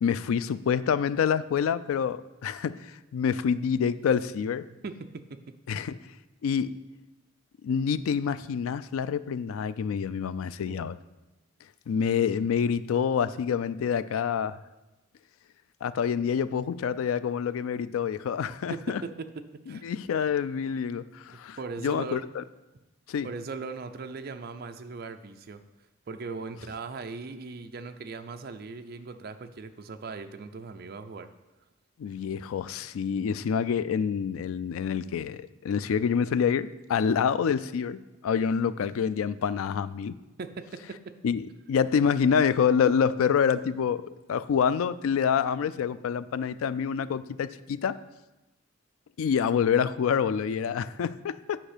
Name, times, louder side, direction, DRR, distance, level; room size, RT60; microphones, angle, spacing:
voice 1, 0.0-4.7 5.7-6.0 6.4-6.7 7.6-11.0 11.9-14.6 15.8-19.0 19.7-21.6 21.8-22.4 23.1-23.3 32.0-40.2 41.2-48.0 49.2-51.6, left 7 dB, 90° left, 15 dB, 0.3 m, -27 dB
voice 2, 4.8-5.5 10.6-10.9 18.7-19.9 21.6-22.2 23.2-25.6 26.1-31.3 40.4-41.2, right 4 dB, 50° right, 7 dB, 0.4 m, -39 dB
8.8 x 5.3 x 5.0 m, 1.1 s
head